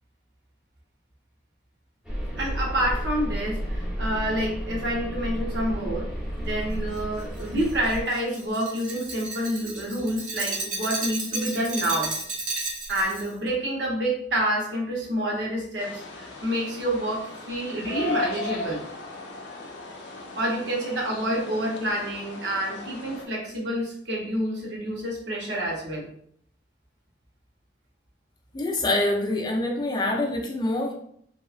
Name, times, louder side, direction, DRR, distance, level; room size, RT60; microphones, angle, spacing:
sound 1, 2.0-8.0, equal, ahead, 0.8 m, -32 dB
voice 1, 2.4-6.1 6.4-12.1 12.9-18.8 20.3-26.1, right 1 dB, 70° right, -3 dB, 0.9 m, -28 dB
Glass, 6.9-13.3, right 3 dB, 50° right, 0.7 m, -33 dB
sound 2, 15.8-23.3, left 3 dB, 75° left, 0.5 m, -36 dB
voice 2, 28.5-30.9, left 2 dB, 25° left, 0 dB, 0.4 m, -25 dB
2.8 x 2.2 x 2.4 m, 0.66 s
head